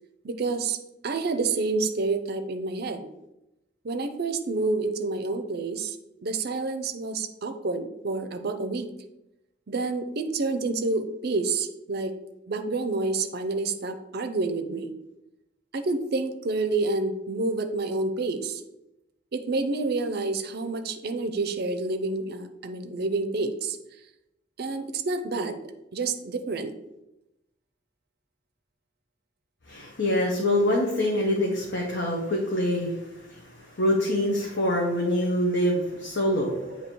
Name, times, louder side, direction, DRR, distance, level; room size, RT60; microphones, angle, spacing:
voice 1, 0.2-0.8 1.0-3.0 3.8-6.0 6.2-8.9 9.7-12.1 12.5-14.9 15.7-18.6 19.3-23.8 24.6-25.6 25.9-26.7, right 3 dB, 55° right, 9 dB, 0.5 m, -28 dB
voice 2, 29.7-36.6, left 1 dB, 65° left, -2 dB, 0.9 m, -25 dB
7.7 x 2.8 x 4.5 m, 0.91 s
head